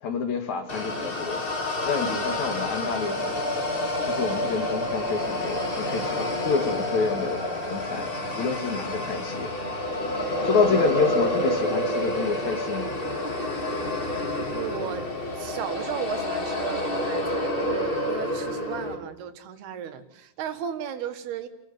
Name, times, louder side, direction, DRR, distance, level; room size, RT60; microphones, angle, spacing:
voice 1, 0.0-1.4 1.8-3.4 4.1-9.5 10.4-13.0, left 5 dB, 55° left, 2.9 m, -28 dB
sound 1, 0.7-18.9, left 1 dB, 20° left, 2.0 m, -28 dB
voice 2, 2.0-2.3 10.6-10.9 14.5-15.1 15.4-21.5, right 9 dB, 85° right, 3.7 m, -35 dB
29.5 x 14.0 x 7.9 m
omnidirectional pair, 4.4 m